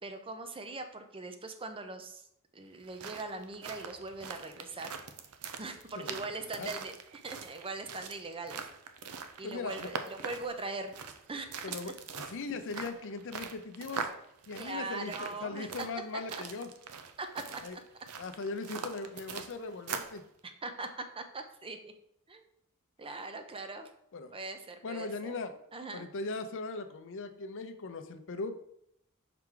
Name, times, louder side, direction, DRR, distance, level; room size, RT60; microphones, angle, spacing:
voice 1, 0.0-2.2 2.5-4.9 5.6-6.9 7.2-8.6 9.4-11.0 11.3-11.5 14.6-15.9 16.3-16.4 17.2-17.6 20.4-21.9 22.3-22.4 23.0-23.9 24.3-25.4 25.7-26.1, right 3 dB, 25° right, 7 dB, 0.6 m, -41 dB
sound 1, 2.7-20.2, right 6 dB, 90° right, 0.6 m, -43 dB
voice 2, 9.4-10.0 11.6-11.9 12.3-14.1 14.5-16.7 17.6-17.8 18.2-20.3 24.1-24.3 24.8-25.5 25.9-28.6, left 3 dB, 60° left, 9 dB, 0.6 m, -39 dB
5.8 x 4.5 x 3.8 m, 0.74 s
head